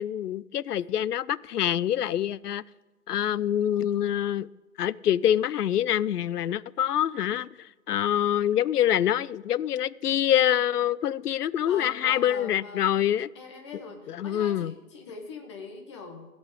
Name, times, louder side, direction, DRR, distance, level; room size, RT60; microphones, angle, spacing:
voice 1, 0.0-2.6 3.1-4.5 4.8-13.3 14.1-14.7, left 11 dB, 80° left, 20 dB, 0.6 m, -25 dB
voice 2, 11.7-13.0 13.3-16.3, left 4 dB, 20° left, 2 dB, 1.1 m, -42 dB
15.5 x 5.3 x 8.5 m, 1.2 s
hypercardioid pair, 165°, 45 cm